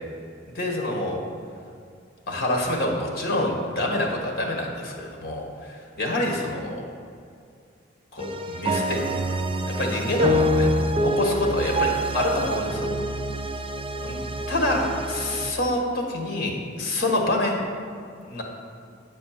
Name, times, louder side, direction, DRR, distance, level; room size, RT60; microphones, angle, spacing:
voice 1, 0.5-1.2 2.3-6.8 8.1-9.1 9.6-10.7 11.0-12.9 14.0-17.6 18.2-18.4, left 1 dB, 55° left, 1 dB, 1.4 m, -27 dB
sound 1, 8.2-15.5, equal, 30° right, 0.4 m, -26 dB
9.0 x 4.3 x 7.3 m, 2.3 s
head